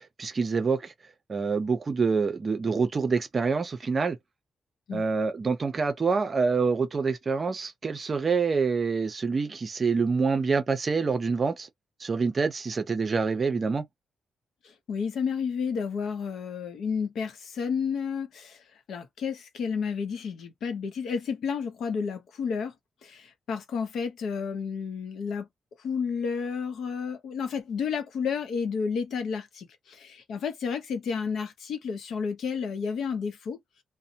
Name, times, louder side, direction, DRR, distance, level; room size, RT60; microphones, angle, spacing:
voice 1, 0.2-0.9 1.3-4.2 4.9-11.7 12.0-13.8, right 4 dB, 30° right, 0.5 m, -26 dB
voice 2, 14.6-22.7 23.0-25.5 25.8-33.6, left 6 dB, 70° left, 0.7 m, -31 dB
2.6 x 2.1 x 2.7 m
wide cardioid pair, 165°, 0 cm